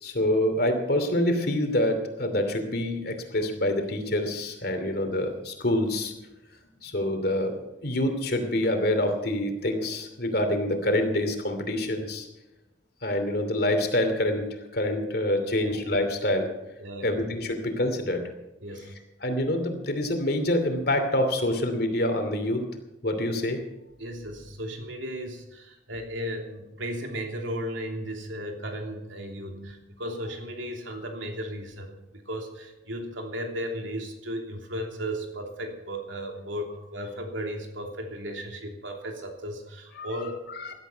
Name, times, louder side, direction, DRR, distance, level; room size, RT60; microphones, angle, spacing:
voice 1, 0.0-6.1 6.8-7.5 7.8-12.3 13.0-14.5 14.7-16.5 17.0-18.2 19.2-22.6 23.0-23.6 39.9-40.1 40.6-40.7, left 1 dB, 55° left, 6 dB, 2.7 m, -26 dB
voice 2, 16.8-17.6 18.6-19.0 24.0-40.4, equal, 80° right, 2 dB, 3.1 m, -35 dB
17.5 x 12.0 x 5.7 m, 0.96 s
head